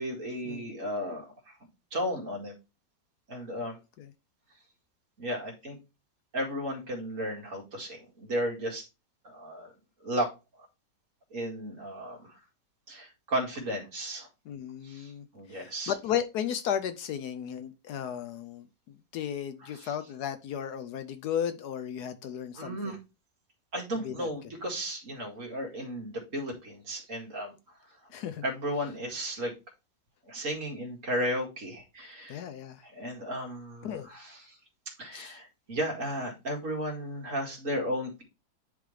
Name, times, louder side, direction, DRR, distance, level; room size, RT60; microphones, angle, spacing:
voice 1, 0.0-1.6 1.9-2.5 3.3-3.8 5.2-5.8 6.3-8.8 9.2-9.7 10.0-10.3 11.3-12.3 12.9-14.3 14.8-15.9 19.6-19.9 22.6-23.0 23.7-27.5 28.4-29.5 30.3-32.4 32.8-34.6 35.0-38.2, equal, 50° right, 2.3 m, -34 dB
voice 2, 14.5-18.7 19.1-22.9 23.9-24.3 28.1-28.4 32.3-32.8 33.8-34.1 35.1-35.4, left 9 dB, 70° left, 1.1 m, -34 dB
10.0 x 3.5 x 3.2 m
omnidirectional pair, 1.9 m